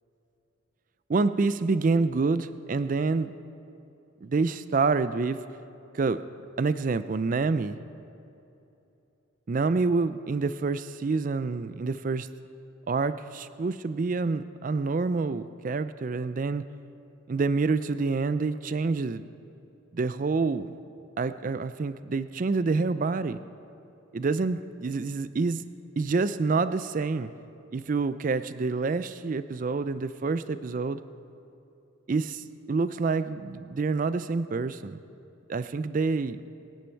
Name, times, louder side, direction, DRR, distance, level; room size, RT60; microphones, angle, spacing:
voice 1, 1.1-3.4 4.2-5.4 5.9-6.2 6.6-7.8 9.5-12.3 12.9-16.6 17.3-19.2 19.9-20.7 21.2-23.4 24.1-25.6 26.0-27.3 27.7-31.0 32.1-35.0 35.5-36.4, right 4 dB, 40° right, 13 dB, 0.4 m, -27 dB
23.0 x 10.5 x 4.5 m, 2.9 s
head